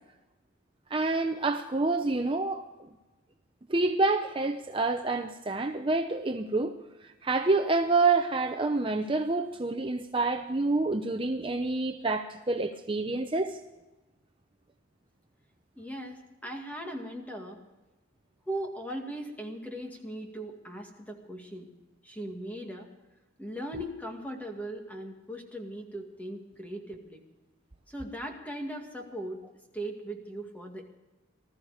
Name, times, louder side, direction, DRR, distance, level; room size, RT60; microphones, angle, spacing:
voice 1, 0.9-2.6 3.7-6.7 7.0-13.6, right 3 dB, 25° right, 0.6 m, -27 dB
voice 2, 15.8-17.6 18.5-21.7 22.0-22.9 23.4-27.2 27.9-29.4 29.7-30.9, right 1 dB, 10° left, 2.1 m, -39 dB
19.5 x 14.0 x 5.0 m
head